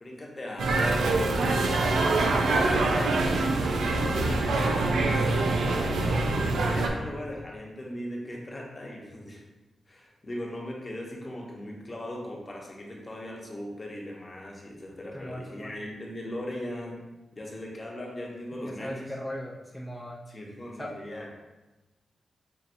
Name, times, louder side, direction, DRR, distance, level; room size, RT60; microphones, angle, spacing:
voice 1, 0.0-1.3 2.0-9.4 9.9-17.0 17.4-19.1 20.3-21.3, left 1 dB, 35° left, -2 dB, 0.9 m, -39 dB
sound 1, 0.6-6.9, right 2 dB, 90° right, 0.4 m, -25 dB
voice 2, 2.0-2.3 15.1-15.7 18.6-20.2 20.8-21.0, equal, ahead, -3 dB, 0.5 m, -38 dB
5.7 x 2.6 x 2.6 m, 1.1 s
cardioid pair, 60°, 0 cm